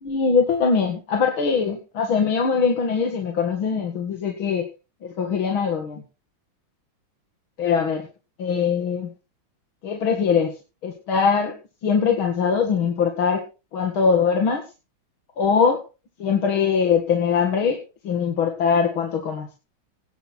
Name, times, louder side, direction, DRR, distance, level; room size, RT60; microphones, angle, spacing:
voice 1, 0.0-4.7 5.0-6.0 7.6-8.1 8.4-9.1 9.8-10.5 10.8-11.5 11.8-13.4 13.7-14.7 15.4-15.8 16.2-19.5, left 6 dB, 80° left, 3 dB, 2.8 m, -22 dB
18.5 x 6.2 x 6.0 m, 0.32 s
omnidirectional pair, 2.2 m